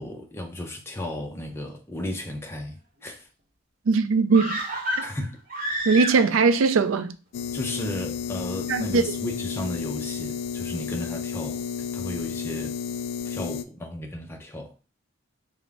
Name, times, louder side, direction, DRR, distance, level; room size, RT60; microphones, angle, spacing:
voice 1, 0.0-3.3 5.0-5.4 7.5-12.8 13.2-14.7, left 1 dB, 10° left, 0.5 m, -34 dB
voice 2, 3.9-4.6 4.9-5.0 5.9-7.2 8.7-9.0, right 4 dB, 85° right, 0.4 m, -20 dB
sound 1, 4.3-6.5 6.8-6.9, equal, 45° right, 0.9 m, -30 dB
sound 2, 7.3-13.6, left 7 dB, 65° left, 0.3 m, -32 dB
3.7 x 2.1 x 3.4 m
head